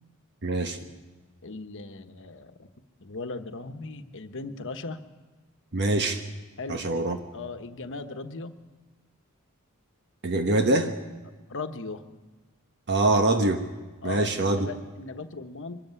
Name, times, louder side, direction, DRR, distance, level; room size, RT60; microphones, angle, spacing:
voice 1, 0.4-0.8 5.7-6.2 6.7-7.2 10.2-10.9 12.9-13.6 14.0-14.7, right 2 dB, 50° right, 6 dB, 1.3 m, -24 dB
voice 2, 1.4-2.7 3.0-5.0 6.6-7.1 7.3-8.6 11.5-12.0 14.0-15.8, left 3 dB, 60° left, 9 dB, 1.2 m, -38 dB
23.0 x 13.5 x 9.6 m, 1.3 s
head